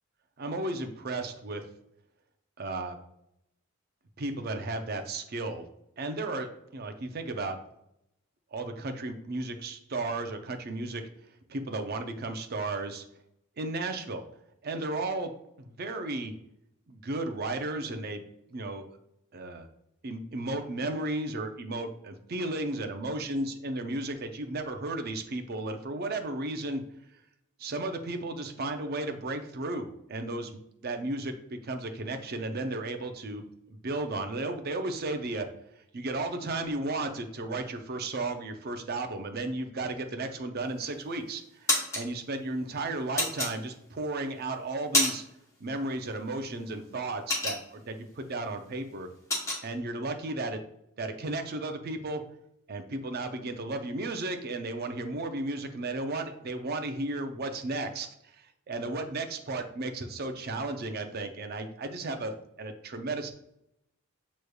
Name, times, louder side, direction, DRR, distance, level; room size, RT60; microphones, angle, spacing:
voice 1, 0.4-1.6 2.6-3.0 4.2-5.6 6.0-7.6 8.5-11.0 11.5-13.0 13.6-14.2 14.6-16.3 16.9-18.2 18.5-18.8 19.3-19.7 20.0-26.8 27.6-35.5 35.8-45.2 45.6-49.1 49.6-50.6 51.0-52.2 52.7-63.3, right 2 dB, 45° right, 6 dB, 0.5 m, -34 dB
sound 1, 40.6-41.1 41.4-42.0 43.2-44.0 44.5-45.4 45.7-46.0 46.3-48.0 48.4-48.6 48.8-49.6, left 1 dB, 15° left, 1.0 m, -28 dB
6.4 x 3.1 x 2.3 m, 0.79 s
head